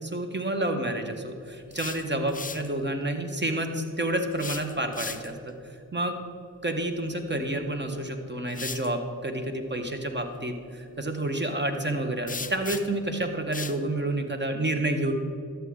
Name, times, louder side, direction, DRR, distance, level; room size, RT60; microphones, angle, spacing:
voice 1, 0.1-5.5 5.9-6.2 6.6-15.1, right 1 dB, 25° right, 5 dB, 1.4 m, -29 dB
sound 1, 1.5-2.7 4.3-5.5 7.6-7.7 8.5-8.9 12.3-13.1 13.5-13.8, left 4 dB, 20° left, 0.5 m, -37 dB
12.5 x 7.6 x 3.9 m, 2.5 s
cardioid pair, 40°, 43 cm